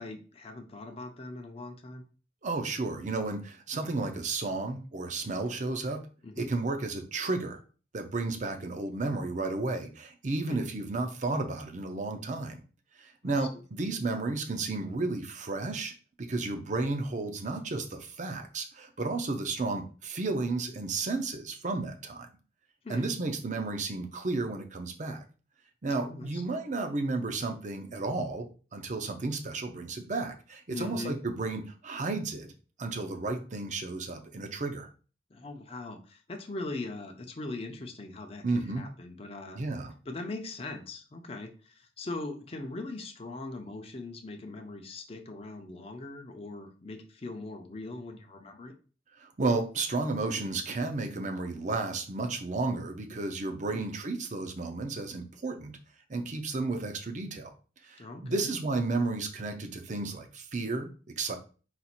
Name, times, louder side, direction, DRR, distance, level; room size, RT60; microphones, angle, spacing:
voice 1, 0.0-2.0 6.2-6.5 10.5-10.6 13.2-13.5 22.8-23.1 25.9-26.6 30.7-31.2 35.3-38.4 38.8-39.6 40.1-48.7 53.7-53.8 58.0-58.5, left 2 dB, 35° left, 4 dB, 0.5 m, -40 dB
voice 2, 2.4-6.0 6.4-7.6 7.9-12.6 13.0-22.3 22.9-25.2 25.8-28.5 28.7-32.5 32.8-34.9 38.4-38.8 39.5-39.9 49.2-55.8 56.1-57.5 57.8-61.4, right 3 dB, 40° right, 6 dB, 0.6 m, -32 dB
4.1 x 2.4 x 4.3 m, 0.37 s
head